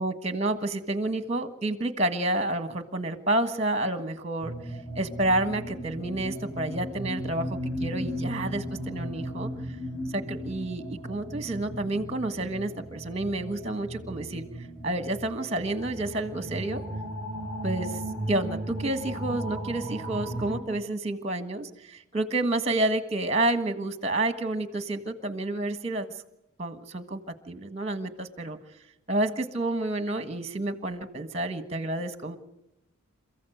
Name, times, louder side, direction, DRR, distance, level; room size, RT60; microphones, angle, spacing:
voice 1, 0.0-4.5 4.9-9.5 10.1-14.4 14.8-16.8 17.6-18.0 18.3-26.1 26.6-27.2 27.5-28.6 29.1-32.4, right 2 dB, 30° right, 9 dB, 1.5 m, -29 dB
lonely music, 4.4-20.6, right 1 dB, 5° left, 4.1 m, -36 dB
28.5 x 15.0 x 8.0 m, 0.87 s
head